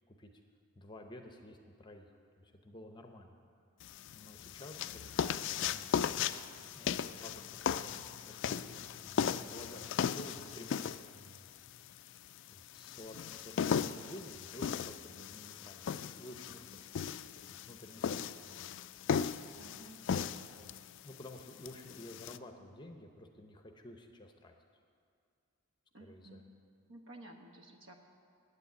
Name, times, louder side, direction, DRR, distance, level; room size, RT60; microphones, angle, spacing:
voice 1, 0.7-3.4 4.1-6.0 6.5-11.5 12.5-16.8 17.4-18.7 20.6-24.5 26.0-26.5, left 1 dB, 20° left, 5 dB, 0.7 m, -52 dB
sound 1, 3.8-22.4, left 7 dB, 55° left, 0.3 m, -37 dB
voice 2, 19.6-20.3 25.9-26.5 26.9-28.0, right 1 dB, 60° right, 3 dB, 1.3 m, -54 dB
9.9 x 8.3 x 9.3 m, 2.3 s
head